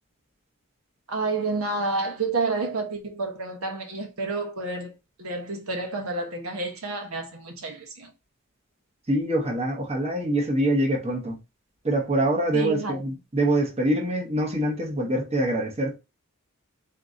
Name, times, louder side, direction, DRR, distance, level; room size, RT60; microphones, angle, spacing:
voice 1, 1.1-8.1 12.5-13.0, right 3 dB, 75° right, 1.0 m, -29 dB
voice 2, 9.1-11.4 11.8-16.0, right 1 dB, 30° right, 0.9 m, -25 dB
3.8 x 2.8 x 3.7 m
head